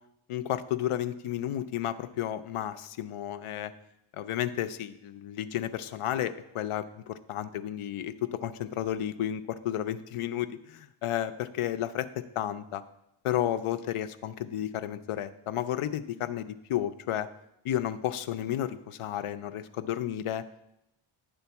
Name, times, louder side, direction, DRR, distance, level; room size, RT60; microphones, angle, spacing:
voice 1, 0.3-3.7 4.1-12.8 13.2-17.3 17.6-20.4, left 11 dB, 90° left, 11 dB, 0.6 m, -32 dB
9.2 x 3.8 x 7.0 m, 0.84 s
wide cardioid pair, 170°, 50 cm